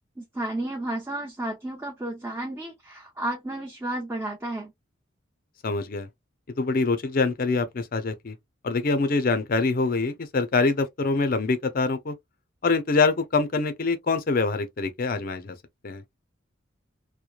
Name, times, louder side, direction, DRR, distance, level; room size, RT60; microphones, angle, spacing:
voice 1, 0.2-4.7, right 1 dB, 10° right, 0.6 m, -32 dB
voice 2, 5.6-6.1 6.6-8.3 8.6-12.1 12.6-15.5 15.8-16.0, left 3 dB, 45° left, 0.5 m, -24 dB
2.9 x 2.1 x 2.3 m
head